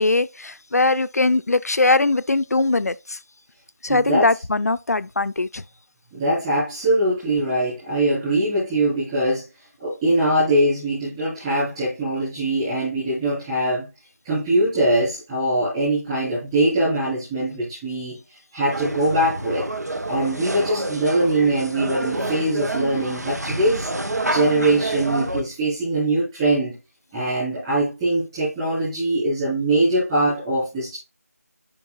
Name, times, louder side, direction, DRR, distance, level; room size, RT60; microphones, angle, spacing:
voice 1, 0.0-3.2 3.8-5.6, left 2 dB, 75° left, 0.5 m, -21 dB
voice 2, 3.9-4.3 6.1-9.4 9.8-13.9 14.2-18.2 18.5-19.7 20.1-23.9 24.3-26.7 27.1-31.0, right 1 dB, 15° right, 3.5 m, -22 dB
sound 1, 18.7-25.4, right 1 dB, 85° right, 1.0 m, -28 dB
9.5 x 5.2 x 2.3 m
figure-of-eight pair, 170°, 9 cm